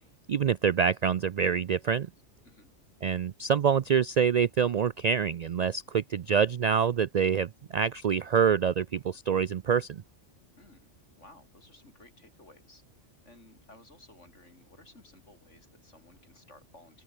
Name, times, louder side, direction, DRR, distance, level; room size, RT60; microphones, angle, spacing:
voice 1, 0.3-2.1 3.0-10.0, right 7 dB, 70° right, 0.4 m, -26 dB
voice 2, 10.5-12.8 13.2-17.0, left 2 dB, 80° left, 5.7 m, -56 dB
open air
omnidirectional pair, 1.2 m